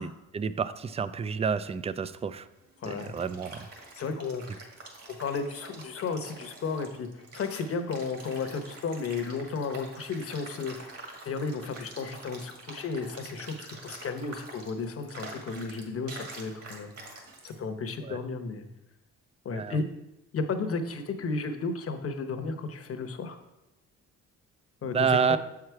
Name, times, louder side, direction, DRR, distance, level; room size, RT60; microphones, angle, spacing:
voice 1, 0.0-2.5 2.9-3.7 18.0-18.2 19.5-19.8 24.9-25.4, right 6 dB, 20° right, 14 dB, 0.3 m, -29 dB
sound 1, 2.5-17.6, right 2 dB, 50° right, 2.0 m, -46 dB
voice 2, 2.8-3.1 3.9-4.4 5.1-10.9 11.2-16.9 17.4-18.7 19.4-19.8 20.3-23.4 24.8-25.0 25.3-25.4, left 4 dB, 50° left, 7 dB, 0.9 m, -33 dB
7.3 x 4.8 x 4.7 m, 0.93 s
cardioid pair, 90°, 30 cm